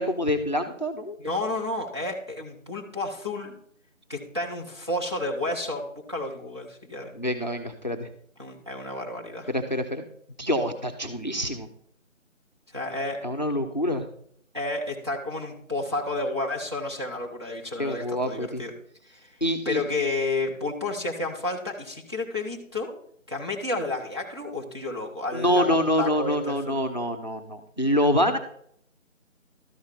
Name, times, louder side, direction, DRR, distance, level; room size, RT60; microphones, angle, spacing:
voice 1, 0.0-1.2 7.1-8.1 9.5-10.0 10.4-11.7 13.2-14.1 17.8-18.6 19.4-19.8 25.3-28.4, equal, 35° left, 6 dB, 0.6 m, -26 dB
voice 2, 1.2-3.6 4.1-7.1 8.4-9.5 12.7-13.2 14.5-18.7 19.1-19.3 19.6-22.9 23.3-26.8, left 2 dB, 20° right, -2 dB, 0.8 m, -31 dB
12.5 x 5.4 x 4.4 m, 0.66 s
figure-of-eight pair, 165°, 41 cm